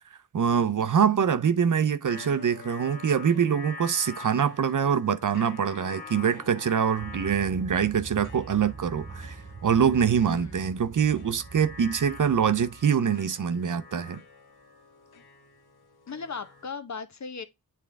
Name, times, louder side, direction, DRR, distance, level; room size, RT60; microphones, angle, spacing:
voice 1, 0.3-14.2, right 7 dB, 55° right, 0.7 m, -24 dB
sound 1, 2.1-16.7, left 4 dB, 75° left, 1.6 m, -46 dB
sound 2, 7.0-12.9, right 4 dB, 35° right, 1.2 m, -43 dB
voice 2, 10.2-10.6 16.1-17.4, left 5 dB, 45° left, 1.0 m, -37 dB
8.7 x 3.7 x 3.4 m
wide cardioid pair, 95°, 37 cm